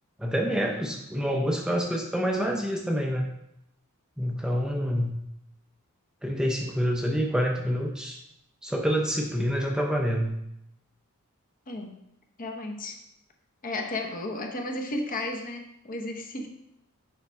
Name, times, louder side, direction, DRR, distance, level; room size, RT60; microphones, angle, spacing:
voice 1, 0.2-3.3 4.2-5.2 6.2-8.2 8.6-10.3, equal, 5° right, 1 dB, 0.5 m, -27 dB
voice 2, 11.7-12.0 12.4-13.0 13.6-16.5, left 2 dB, 40° left, 2 dB, 0.9 m, -33 dB
7.0 x 5.2 x 3.5 m, 0.81 s
head